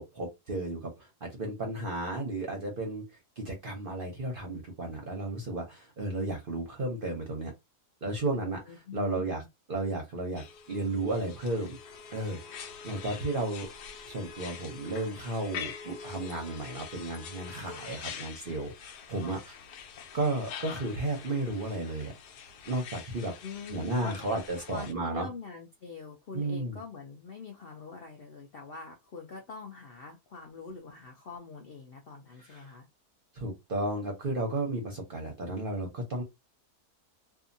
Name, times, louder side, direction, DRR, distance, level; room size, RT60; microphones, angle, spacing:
voice 1, 0.0-3.1 3.4-7.5 8.0-9.4 9.7-11.8 12.1-13.7 14.1-19.6 20.1-22.1 22.7-23.3 23.7-25.3 26.3-26.8 32.4-32.7 33.4-36.2, right 2 dB, 45° right, 0.7 m, -33 dB
voice 2, 8.7-9.5 12.9-13.3 23.4-24.4 24.7-32.9, left 5 dB, 60° left, 0.6 m, -44 dB
sound 1, 10.4-24.9, left 7 dB, 85° left, 1.2 m, -45 dB
2.7 x 2.4 x 2.6 m
omnidirectional pair, 1.7 m